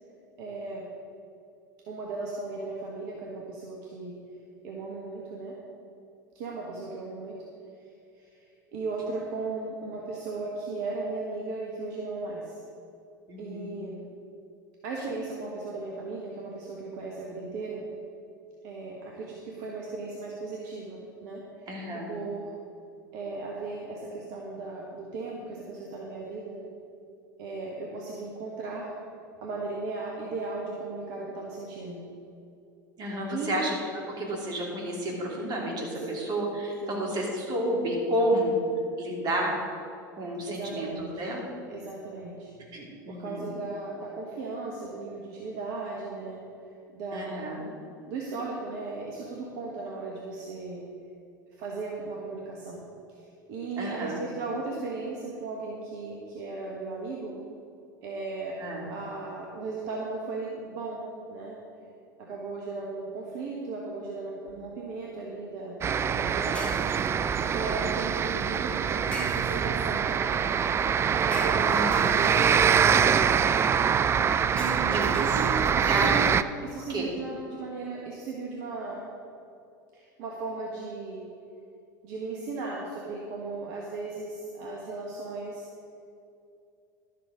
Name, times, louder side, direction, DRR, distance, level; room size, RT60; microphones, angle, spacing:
voice 1, 0.1-0.9 1.9-4.2 4.6-5.6 6.3-7.4 8.1-12.5 13.4-14.0 14.8-17.8 18.6-21.7 21.9-22.5 23.1-26.6 27.4-28.9 29.4-32.0 33.3-33.6 36.0-36.2 36.8-37.1 40.4-41.3 41.7-42.5 43.1-46.4 46.9-47.6 48.1-50.8 51.5-52.8 53.1-57.4 58.0-58.6 58.8-61.6 62.2-70.3 71.1-73.4 74.5-76.3 76.6-79.0 79.9-81.2 82.0-85.6, right 3 dB, 60° right, -2 dB, 1.6 m, -36 dB
voice 2, 13.3-13.8 21.7-22.2 33.0-33.7 34.2-38.5 39.0-39.6 40.2-41.4 42.7-43.4 47.1-47.6 53.8-54.2 58.6-58.9 71.7-72.1 74.9-75.2 75.7-76.1 76.7-77.1, right 1 dB, 40° right, -1 dB, 3.0 m, -31 dB
sound 1, 64.5-64.7 66.5-67.4 69.1-69.9 71.3-72.6 74.6-75.9, left 1 dB, 10° left, 2.4 m, -41 dB
sound 2, 65.8-76.4, right 7 dB, 25° right, 0.4 m, -24 dB
12.0 x 7.6 x 5.1 m, 2.6 s
figure-of-eight pair, 80°, 11 cm